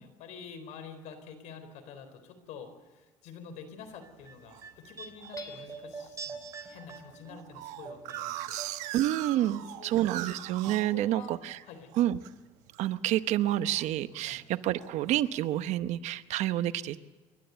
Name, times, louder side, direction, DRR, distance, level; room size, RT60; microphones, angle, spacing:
voice 1, 0.0-8.9 9.5-10.0 10.9-11.9 14.2-14.4, left 6 dB, 75° left, 8 dB, 4.1 m, -48 dB
sound 1, 3.9-4.6 5.2-5.6 6.0-6.1 6.3-6.4 6.8-11.6 11.9-12.3 12.7-13.0 13.3-14.3 14.7-15.2, right 14 dB, 90° right, 1.1 m, -41 dB
sound 2, 4.0-9.3 9.5-10.5 10.7-10.8, right 4 dB, 25° right, 3.2 m, -45 dB
Hammer / Chink clink, 5.4-6.2, left 6 dB, 30° left, 3.2 m, -48 dB
voice 2, 8.9-11.6 12.0-12.2 12.8-17.0, right 13 dB, 70° right, 12 dB, 0.9 m, -29 dB
29.5 x 12.5 x 8.1 m, 1.2 s
cardioid pair, 135°, 12 cm